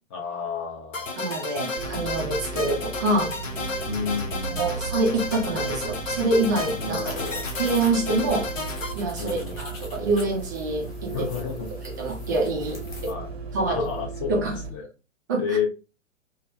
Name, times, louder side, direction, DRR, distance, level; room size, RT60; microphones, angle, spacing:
voice 1, 0.1-2.0 3.8-4.8 6.8-7.4 9.2-9.6 11.0-11.7 13.0-13.3 13.6-14.9 15.4-15.7, left 6 dB, 25° left, 0.7 m, -32 dB
sound 1, 0.9-8.9, left 2 dB, 85° left, 0.7 m, -32 dB
voice 2, 1.2-3.3 4.5-7.1 7.6-8.5 8.9-11.1 11.8-13.1 13.5-13.9 14.3-14.6 15.3-15.4, right 2 dB, 15° right, 0.4 m, -26 dB
Bus, 1.8-14.7, right 4 dB, 55° right, 0.7 m, -36 dB
sound 2, 6.3-13.1, left 2 dB, 50° left, 1.3 m, -43 dB
3.3 x 2.0 x 2.5 m
figure-of-eight pair, 115°, 38 cm